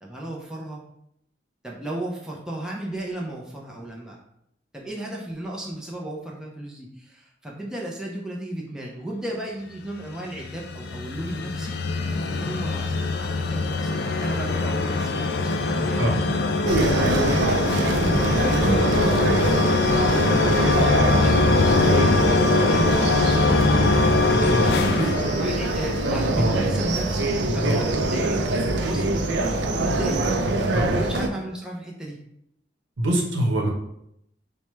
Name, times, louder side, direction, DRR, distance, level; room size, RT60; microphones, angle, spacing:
voice 1, 0.0-0.8 1.6-4.2 4.7-12.9 13.2-16.2 16.8-20.1 20.5-23.9 24.4-30.3 30.9-32.2, right 1 dB, 5° right, -3 dB, 0.5 m, -34 dB
sound 1, 10.0-26.1, left 3 dB, 55° left, 0.3 m, -22 dB
sound 2, 16.7-31.3, right 2 dB, 65° right, 0.4 m, -24 dB
voice 2, 33.0-33.7, right 1 dB, 90° right, 0 dB, 0.8 m, -23 dB
4.5 x 2.2 x 3.0 m, 0.77 s
head